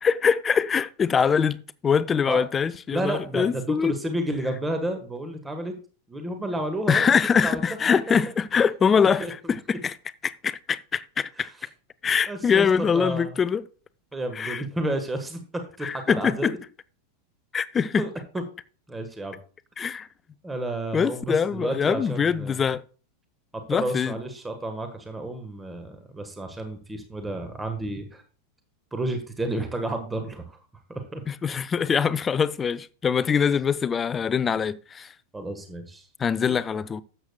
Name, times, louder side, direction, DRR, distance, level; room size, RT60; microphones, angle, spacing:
voice 1, 0.0-4.0 6.9-10.0 10.2-11.5 12.0-13.6 14.3-14.6 15.8-16.6 17.5-18.1 19.8-20.1 20.9-22.8 23.7-24.2 31.3-35.1 36.2-37.0, left 6 dB, 20° left, 0.4 m, -23 dB
voice 2, 2.9-5.7 6.1-7.1 7.4-7.6 7.9-8.0 9.2-9.3 11.4-11.5 12.3-12.7 12.9-13.3 14.1-16.5 18.0-18.1 18.3-18.4 18.9-19.4 20.4-22.6 23.7-28.2 28.9-30.6 31.1-31.2 35.3-36.1 36.5-36.6, right 1 dB, 10° right, 1.3 m, -31 dB
12.5 x 8.1 x 2.3 m
figure-of-eight pair, 90°, 0 cm